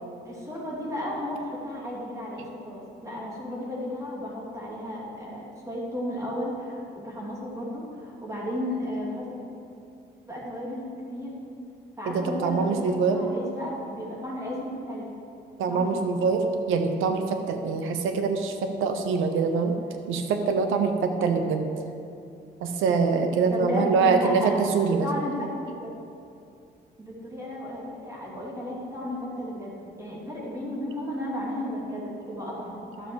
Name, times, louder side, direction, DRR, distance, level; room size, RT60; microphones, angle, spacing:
voice 1, 0.2-9.4 10.3-11.3 12.0-15.1 15.7-16.1 23.5-24.6 25.0-25.9 27.0-33.1, left 1 dB, 15° right, -5 dB, 3.0 m, -34 dB
voice 2, 12.1-13.2 15.6-19.8 20.1-21.7 22.6-25.1, right 5 dB, 85° right, 6 dB, 1.1 m, -24 dB
12.0 x 7.2 x 6.4 m, 2.6 s
cardioid pair, 90°, 20 cm